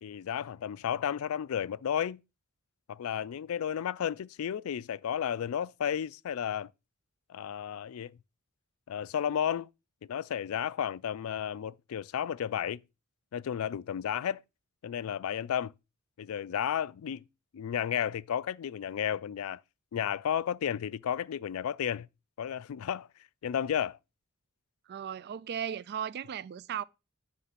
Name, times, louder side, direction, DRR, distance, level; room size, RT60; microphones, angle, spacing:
voice 1, 0.0-2.2 2.9-6.7 7.3-8.2 8.9-9.7 10.0-12.8 13.3-14.4 14.8-15.7 16.2-17.2 17.5-19.6 19.9-22.1 22.4-23.1 23.4-24.0, left 9 dB, 75° left, 0.3 m, -33 dB
voice 2, 24.9-26.8, right 8 dB, 50° right, 0.3 m, -36 dB
9.5 x 3.4 x 5.7 m
head